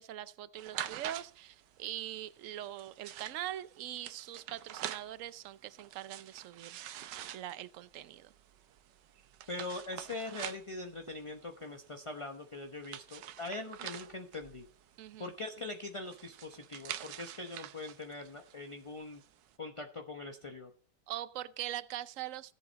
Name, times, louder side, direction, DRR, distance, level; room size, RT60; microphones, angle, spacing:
voice 1, 0.0-8.3 15.0-15.3 21.1-22.5, right 12 dB, 60° right, 0.9 m, -42 dB
sound 1, 0.6-19.5, right 11 dB, 85° right, 1.4 m, -47 dB
voice 2, 9.5-14.7 15.2-19.2 19.6-20.7, left 2 dB, 25° left, 0.8 m, -42 dB
17.5 x 7.9 x 4.0 m
omnidirectional pair, 1.8 m